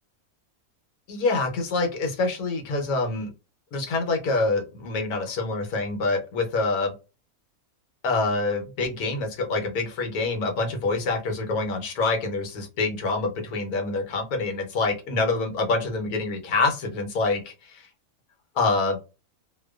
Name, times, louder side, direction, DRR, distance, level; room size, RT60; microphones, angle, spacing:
voice 1, 1.1-3.3 3.7-6.9 8.0-17.9 18.6-19.0, left 3 dB, 90° left, 4 dB, 1.2 m, -26 dB
2.6 x 2.2 x 2.2 m, 0.30 s
omnidirectional pair, 1.5 m